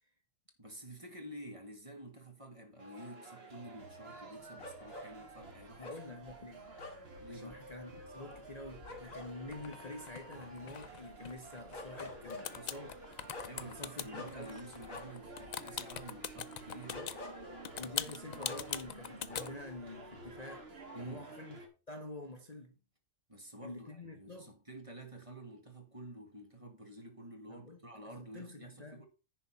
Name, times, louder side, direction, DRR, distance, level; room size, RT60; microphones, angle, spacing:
voice 1, 0.6-6.2 7.2-7.6 12.5-12.7 13.4-17.0 20.9-21.3 23.3-29.1, right 1 dB, 25° right, 1.9 m, -50 dB
sound 1, 2.8-21.7, right 3 dB, 50° right, 1.9 m, -51 dB
sound 2, 4.6-19.8 20.1-20.8, left 2 dB, 75° left, 2.8 m, -50 dB
voice 2, 5.8-6.6 7.3-13.0 13.7-14.6 16.9-17.1 17.8-20.7 21.0-21.6 21.9-22.7 23.6-24.5 27.5-27.8 28.2-29.1, left 2 dB, 30° left, 1.1 m, -47 dB
sound 3, 9.5-12.1 12.3-17.2 17.7-19.5, left 8 dB, 60° left, 0.4 m, -41 dB
10.5 x 4.3 x 5.7 m
omnidirectional pair, 1.4 m